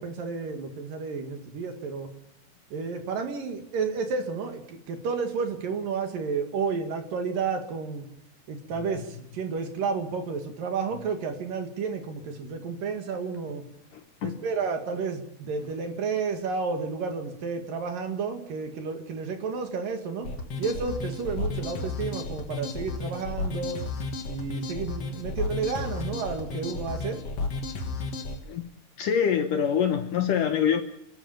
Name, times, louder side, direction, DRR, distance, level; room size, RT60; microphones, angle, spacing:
voice 1, 0.0-2.1 2.7-8.1 8.5-13.6 14.2-20.3 20.6-23.8 24.3-27.3, right 5 dB, 60° right, 6 dB, 3.5 m, -31 dB
sound 1, 20.2-28.4, left 3 dB, 45° left, 2.3 m, -33 dB
voice 2, 29.0-30.8, left 8 dB, 70° left, 7 dB, 2.2 m, -24 dB
29.0 x 12.0 x 8.9 m, 0.78 s
omnidirectional pair, 4.8 m